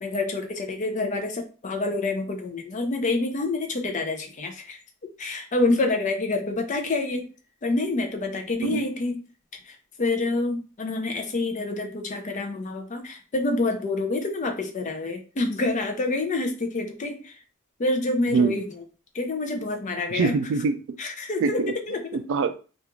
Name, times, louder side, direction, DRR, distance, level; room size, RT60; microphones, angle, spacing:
voice 1, 0.0-4.8 5.2-7.3 7.6-9.2 10.0-17.3 17.8-18.7 19.1-20.3 21.0-22.0, left 2 dB, 35° left, 5 dB, 0.5 m, -27 dB
voice 2, 20.1-20.7 21.4-21.7 22.1-22.6, right 5 dB, 65° right, 9 dB, 0.3 m, -23 dB
2.4 x 2.3 x 2.9 m, 0.35 s
head